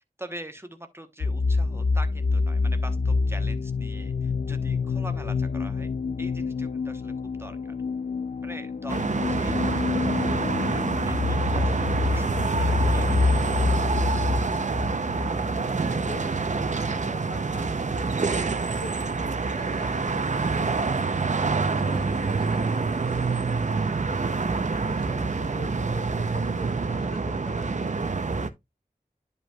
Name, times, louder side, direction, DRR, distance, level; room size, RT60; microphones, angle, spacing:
voice 1, 0.2-5.9 6.2-7.8 8.4-13.3, right 1 dB, 15° right, 1.0 m, -43 dB
sound 1, 1.2-16.7, left 4 dB, 65° left, 0.4 m, -27 dB
sound 2, 8.9-28.5, right 4 dB, 55° right, 0.6 m, -27 dB
voice 2, 15.3-21.1 21.7-24.3 24.7-28.2, left 1 dB, 85° left, 2.2 m, -44 dB
10.5 x 5.3 x 2.3 m
wide cardioid pair, 55°, 15 cm